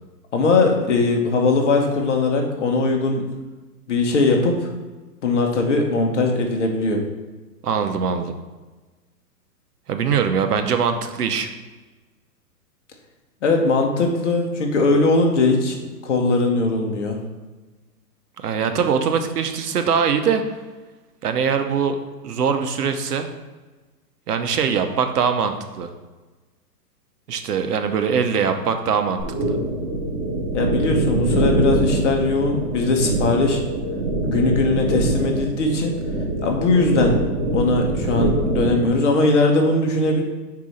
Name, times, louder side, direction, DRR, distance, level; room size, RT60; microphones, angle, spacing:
voice 1, 0.3-3.2 3.9-4.7 5.2-7.0 13.4-15.8 16.0-17.2 30.5-33.6 34.3-35.9 36.4-37.2 37.5-40.2, left 3 dB, 45° left, 2 dB, 1.2 m, -20 dB
voice 2, 7.6-8.3 9.9-11.5 18.4-20.4 21.2-22.0 22.2-23.3 24.3-25.9 27.3-29.6, right 6 dB, 70° right, 7 dB, 0.9 m, -22 dB
sound 1, 29.2-38.9, right 1 dB, 55° right, 1.7 m, -24 dB
4.8 x 4.8 x 5.4 m, 1.2 s
hypercardioid pair, 170°, 48 cm